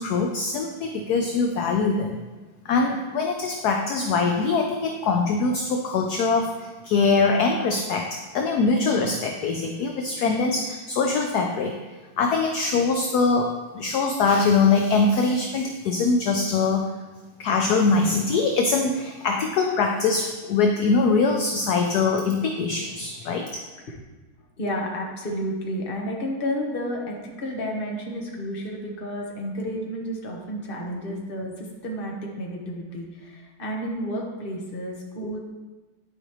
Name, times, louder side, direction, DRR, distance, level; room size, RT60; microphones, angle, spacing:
voice 1, 0.0-2.2 2.7-6.5 6.8-11.7 12.2-16.9 17.4-23.5, left 4 dB, 70° left, 3 dB, 1.0 m, -23 dB
voice 2, 24.6-35.4, equal, 35° left, -1 dB, 1.1 m, -31 dB
10.5 x 5.1 x 3.1 m, 1.2 s
omnidirectional pair, 2.1 m